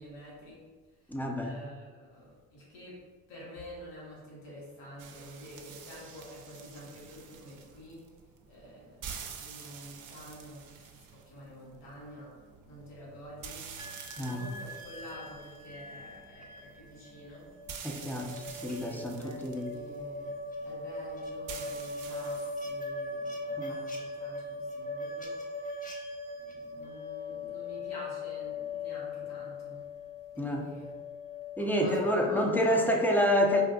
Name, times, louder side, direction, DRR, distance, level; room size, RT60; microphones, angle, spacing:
voice 1, 0.0-8.2 8.5-13.6 14.2-17.5 18.7-26.0 26.3-29.9 30.3-30.9 31.6-33.0, equal, 80° left, -6 dB, 1.5 m, -48 dB
voice 2, 1.1-1.5 14.2-14.4 17.8-19.7 23.6-23.7 30.4-30.6 31.6-33.6, equal, 5° left, 1 dB, 0.6 m, -28 dB
sound 1, 5.0-22.9, right 6 dB, 60° right, 0.6 m, -48 dB
sound 2, 13.8-31.7, left 2 dB, 20° left, 0.9 m, -40 dB
4.8 x 2.5 x 2.4 m, 1.4 s
supercardioid pair, 65°, 37 cm